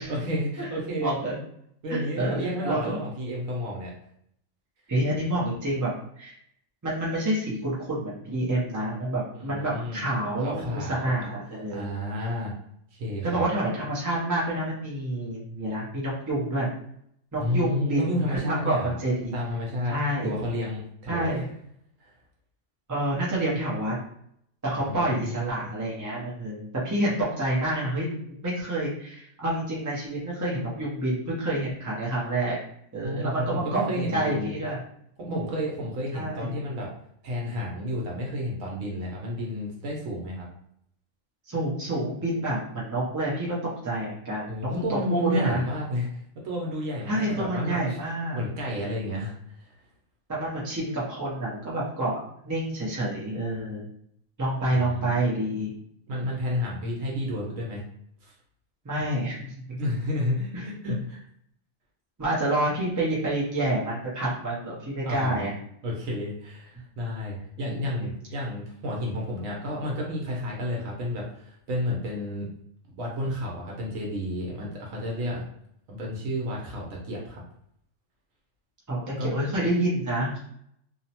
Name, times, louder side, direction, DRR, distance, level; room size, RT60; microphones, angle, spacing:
voice 1, 0.1-1.1 1.8-3.9 9.4-10.0 10.4-11.1 11.7-12.5 12.9-13.4 17.4-18.9 19.3-19.9 20.2-21.3 22.0-22.1 24.8-25.4 33.0-34.5 35.2-36.9 37.2-40.5 44.5-48.0 48.3-49.3 49.6-49.7 54.6-55.2 56.1-57.8 58.2-58.3 59.8-61.2 65.0-65.5 65.8-72.5 73.0-75.4 75.9-77.4 79.2-79.3, left 1 dB, 80° right, -2 dB, 1.1 m, -31 dB
voice 2, 1.0-1.4 1.9-3.0 4.9-6.3 6.8-11.9 13.2-16.7 17.3-19.3 19.9-20.4 21.1-21.4 22.9-24.0 24.6-28.1 28.4-32.6 32.9-34.8 36.1-36.5 41.5-43.6 43.8-45.6 47.1-48.4 50.3-52.2 52.4-53.9 54.4-55.7 58.8-59.4 59.7-59.8 60.5-60.7 62.2-65.5 67.7-67.8 78.9-80.4, right 1 dB, 30° right, -7 dB, 0.3 m, -28 dB
2.8 x 2.0 x 2.8 m, 0.71 s
omnidirectional pair, 1.4 m